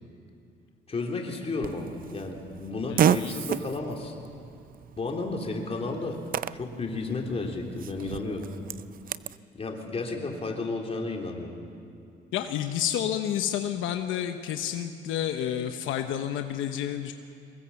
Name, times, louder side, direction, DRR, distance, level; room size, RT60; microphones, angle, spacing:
voice 1, 0.9-4.2 5.0-6.2 6.5-8.5 9.6-11.6, left 3 dB, 30° left, 1 dB, 3.4 m, -32 dB
Fart, 1.6-9.4, right 9 dB, 45° right, 0.5 m, -32 dB
voice 2, 2.9-3.3 12.3-17.1, left 10 dB, 80° left, 7 dB, 1.0 m, -30 dB
23.5 x 20.5 x 7.1 m, 2.6 s
cardioid pair, 95°, 20 cm